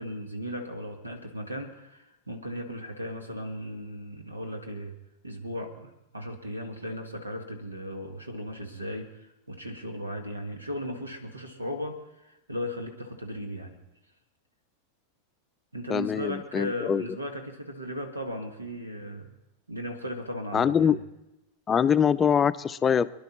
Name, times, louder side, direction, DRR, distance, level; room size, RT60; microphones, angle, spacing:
voice 1, 0.0-4.9 5.2-13.8 15.7-19.3 19.7-21.0, equal, 80° right, 5 dB, 1.6 m, -36 dB
voice 2, 15.9-17.0 20.5-21.0 21.7-23.1, left 7 dB, 20° left, 13 dB, 0.5 m, -23 dB
24.0 x 11.0 x 4.3 m, 0.93 s
figure-of-eight pair, 90°, 0 cm